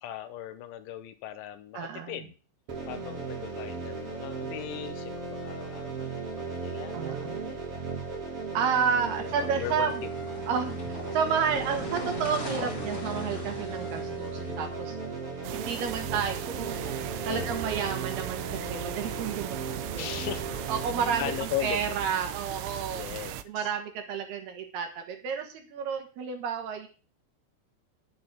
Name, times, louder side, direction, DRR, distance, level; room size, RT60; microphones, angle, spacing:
voice 1, 0.0-2.4 2.9-7.8 9.1-9.9 10.4-10.6 17.3-17.6 20.0-20.8 21.2-22.0 22.9-23.7, left 12 dB, 80° left, 11 dB, 3.2 m, -38 dB
voice 2, 1.7-2.2 6.9-7.5 8.5-9.9 10.5-14.9 15.5-16.9 17.2-19.6 19.9-20.1 20.7-23.1 23.5-26.9, right 6 dB, 65° right, 5 dB, 3.1 m, -31 dB
sound 1, 2.7-21.4, right 4 dB, 45° right, 2.0 m, -36 dB
sound 2, 8.5-15.5, left 1 dB, 25° left, 2.3 m, -42 dB
sound 3, 15.4-23.4, right 14 dB, 80° right, 3.0 m, -38 dB
11.0 x 7.9 x 6.1 m, 0.36 s
omnidirectional pair, 5.6 m